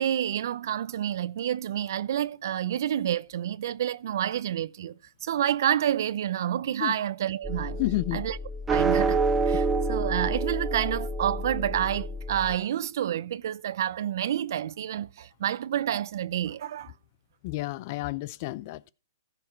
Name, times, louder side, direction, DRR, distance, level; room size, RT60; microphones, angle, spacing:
voice 1, 0.0-4.9 5.2-7.8 8.1-8.4 8.7-16.9, right 10 dB, 55° right, 0.6 m, -29 dB
sound 1, 7.4-12.6, right 3 dB, 10° right, 0.9 m, -28 dB
voice 2, 7.8-8.2 17.4-18.9, left 18 dB, 40° left, 0.5 m, -30 dB
15.5 x 5.9 x 4.5 m
hypercardioid pair, 145°, 2 cm